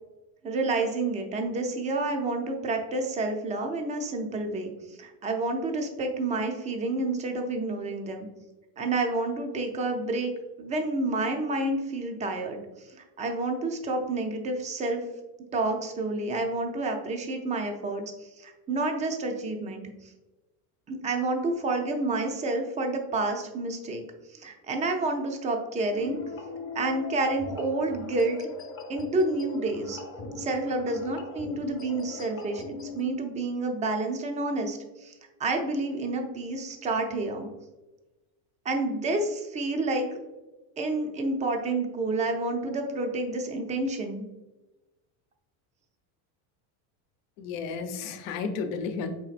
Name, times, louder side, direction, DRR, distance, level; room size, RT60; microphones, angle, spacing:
voice 1, 0.4-8.3 8.8-10.3 10.6-15.1 15.5-20.1 20.9-24.0 24.3-26.2 26.7-28.4 28.9-30.0 30.4-37.5 38.6-40.2 40.8-44.2, right 2 dB, 15° right, 3 dB, 0.5 m, -29 dB
sound 1, 25.9-33.0, left 4 dB, 30° left, 0.7 m, -40 dB
voice 2, 47.4-49.2, left 5 dB, 80° left, 7 dB, 0.8 m, -32 dB
5.0 x 4.1 x 2.4 m, 1.1 s
cardioid pair, 135°, 46 cm